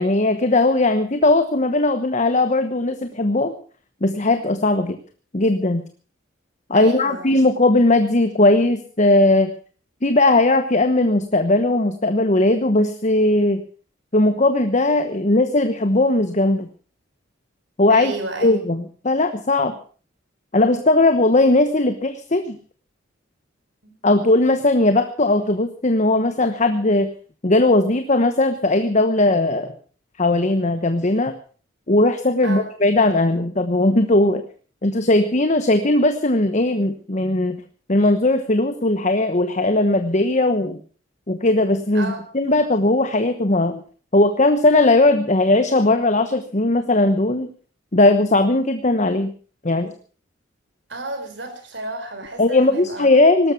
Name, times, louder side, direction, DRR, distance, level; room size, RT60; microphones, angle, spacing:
voice 1, 0.0-3.5 4.0-5.0 5.3-5.8 6.7-9.5 10.0-13.6 14.1-16.7 17.8-18.1 18.4-19.8 20.5-22.6 24.0-27.1 27.4-29.7 30.2-31.3 31.9-34.4 34.8-37.6 37.9-40.8 41.3-43.8 44.1-47.5 47.9-49.3 49.6-49.9 52.4-53.5, left 2 dB, 40° left, 9 dB, 1.1 m, -18 dB
voice 2, 6.7-7.3 17.9-18.6 23.8-23.9 32.4-32.6 41.9-42.2 50.9-53.1, right 2 dB, 65° right, 7 dB, 4.4 m, -32 dB
18.5 x 12.5 x 6.1 m, 0.42 s
head